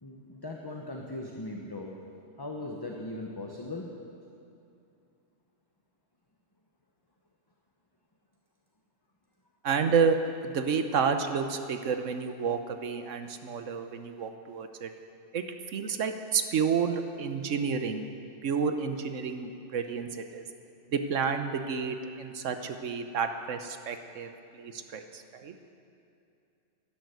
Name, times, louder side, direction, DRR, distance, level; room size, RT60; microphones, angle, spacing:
voice 1, 0.0-2.0 2.4-3.9, left 2 dB, 20° left, 0 dB, 1.1 m, -39 dB
voice 2, 9.6-10.2 10.4-14.9 15.3-18.1 18.4-20.4 20.9-25.5, right 6 dB, 85° right, 7 dB, 1.3 m, -30 dB
12.0 x 12.0 x 8.1 m, 2.7 s
omnidirectional pair, 1.3 m